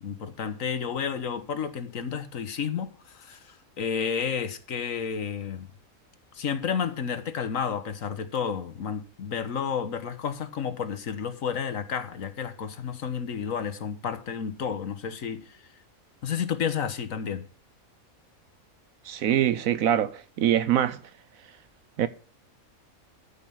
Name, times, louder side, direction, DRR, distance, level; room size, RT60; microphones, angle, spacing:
voice 1, 0.0-5.7 6.3-15.6 16.2-17.4, left 7 dB, 70° left, 1.5 m, -31 dB
voice 2, 19.0-21.0 22.0-22.1, right 11 dB, 80° right, 1.1 m, -24 dB
13.0 x 5.5 x 5.5 m
omnidirectional pair, 1.5 m